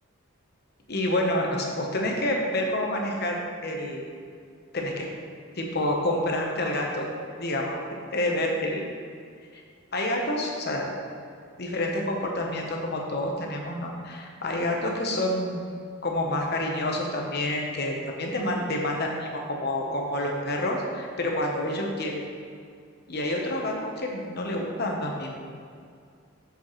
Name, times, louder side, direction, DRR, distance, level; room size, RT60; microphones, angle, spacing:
voice 1, 0.9-4.1 4.7-5.1 5.6-7.1 7.4-7.8 8.1-8.9 9.9-10.9 11.6-15.6 16.0-22.2 23.1-25.3, left 1 dB, 50° left, 0 dB, 1.0 m, -28 dB
7.3 x 7.3 x 3.2 m, 2.3 s
head